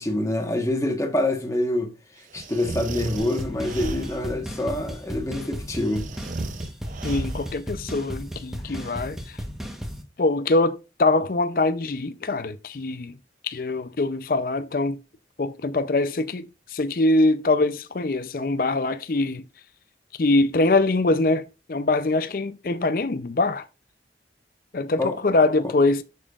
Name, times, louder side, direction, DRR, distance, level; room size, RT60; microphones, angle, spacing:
voice 1, 0.0-1.9 2.3-6.2 8.6-8.9 25.0-25.2, left 1 dB, 15° left, 1.2 m, -26 dB
sound 1, 2.3-4.4 5.7-7.6, right 3 dB, 45° right, 0.5 m, -34 dB
sound 2, 3.2-10.0, equal, ahead, 1.0 m, -35 dB
voice 2, 7.0-9.4 10.2-13.1 13.4-15.0 15.4-19.4 20.2-23.6 24.7-26.0, left 2 dB, 50° left, 0.5 m, -23 dB
8.6 x 7.0 x 2.4 m
head